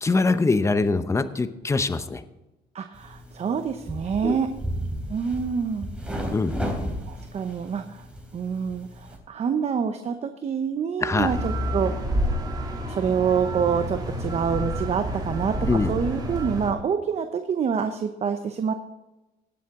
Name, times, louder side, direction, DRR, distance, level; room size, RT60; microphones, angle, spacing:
voice 1, 0.0-2.2 4.2-4.4 6.3-6.6 11.0-11.3 15.7-15.9, left 3 dB, 15° left, 11 dB, 0.8 m, -23 dB
voice 2, 2.7-4.5 5.1-5.9 7.1-8.0 8.3-12.1 12.9-18.7, right 6 dB, 40° right, 7 dB, 0.8 m, -27 dB
sound 1, 2.9-9.2, equal, 5° right, 3.3 m, -34 dB
sound 2, 11.2-16.7, equal, 25° right, 2.8 m, -29 dB
18.0 x 7.4 x 3.7 m, 1.0 s
cardioid pair, 110°, 17 cm